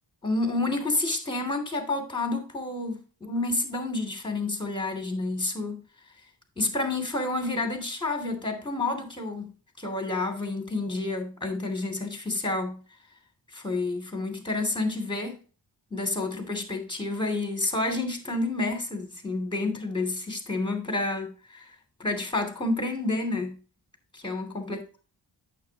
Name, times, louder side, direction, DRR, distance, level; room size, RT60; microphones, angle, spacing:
voice 1, 0.2-5.8 6.6-9.5 9.8-12.8 13.5-15.4 15.9-21.6 22.0-23.6 24.1-24.8, left 2 dB, 10° left, 2.7 m, -29 dB
8.7 x 7.0 x 2.9 m
cardioid pair, 45°, 46 cm